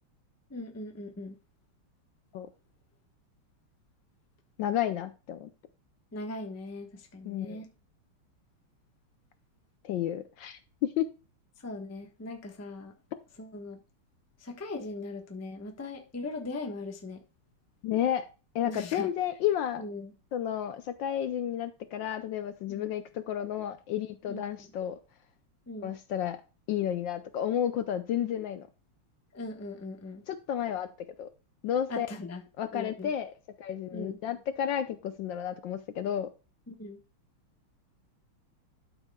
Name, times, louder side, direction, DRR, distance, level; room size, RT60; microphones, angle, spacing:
voice 1, 0.5-1.4 6.1-7.7 11.6-12.9 13.4-13.8 14.4-17.2 18.6-19.1 19.8-20.1 22.7-22.9 24.3-24.5 25.7-25.9 29.3-30.2 31.9-32.4 32.7-33.1 33.9-34.2 36.7-37.0, left 2 dB, 15° left, 0.6 m, -39 dB
voice 2, 4.6-5.5 7.2-7.6 9.8-11.1 17.8-18.3 18.5-19.9 20.3-25.0 25.8-26.4 26.7-28.7 30.3-30.9 31.2-31.3 31.6-32.1 32.6-36.3, left 10 dB, 70° left, 1.2 m, -31 dB
12.0 x 6.3 x 2.3 m
omnidirectional pair, 2.4 m